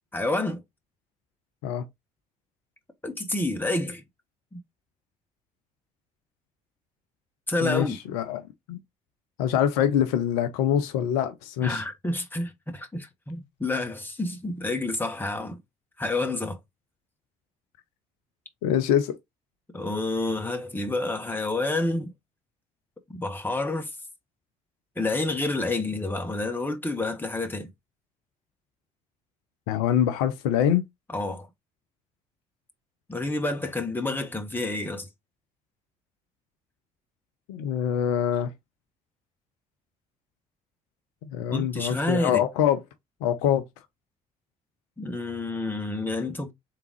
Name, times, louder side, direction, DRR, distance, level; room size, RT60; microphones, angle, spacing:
voice 1, 0.1-0.6 3.0-4.0 4.5-4.6 7.5-8.0 11.6-15.6 16.0-16.6 19.7-22.1 23.1-23.9 25.0-27.7 31.1-31.5 33.1-35.1 41.5-42.4 45.0-46.5, left 2 dB, 10° left, 1.2 m, -29 dB
voice 2, 7.6-8.4 8.7-8.8 9.4-11.8 18.6-19.2 29.7-30.8 37.5-38.5 41.2-42.8 43.2-43.6, left 9 dB, 65° left, 0.5 m, -24 dB
3.8 x 3.5 x 3.0 m
figure-of-eight pair, 50°, 20 cm